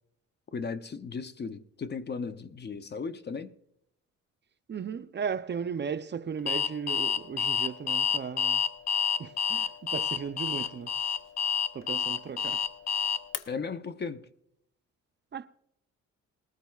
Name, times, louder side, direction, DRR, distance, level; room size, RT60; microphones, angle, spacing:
voice 1, 0.5-3.5 13.5-14.3, left 5 dB, 35° left, 0.7 m, -36 dB
voice 2, 4.7-8.6 9.2-11.0 11.7-12.6 15.3-15.5, right 6 dB, 35° right, 0.6 m, -36 dB
Alarm, 6.5-13.4, left 7 dB, 60° left, 0.9 m, -28 dB
20.0 x 13.5 x 2.4 m
cardioid pair, 90°, 30 cm